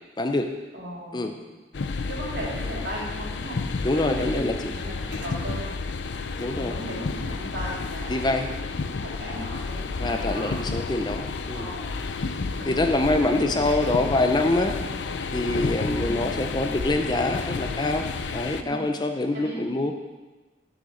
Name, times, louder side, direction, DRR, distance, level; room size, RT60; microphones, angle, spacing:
voice 1, 0.2-0.5 1.1-1.3 3.8-4.5 6.4-6.8 8.1-8.5 10.0-11.7 12.7-14.8 15.3-19.9, left 2 dB, 25° left, 5 dB, 0.6 m, -25 dB
voice 2, 0.7-1.5 2.1-3.6 3.9-4.5 4.7-5.7 6.6-8.4 8.8-10.6 11.5-12.0 12.5-14.1 14.7-14.9 16.0-16.3 18.6-18.9 19.3-19.7, right 1 dB, 70° right, -5 dB, 3.3 m, -37 dB
sound 1, 1.7-18.6, left 4 dB, 85° left, 0.6 m, -31 dB
7.2 x 6.5 x 7.6 m, 1.2 s
head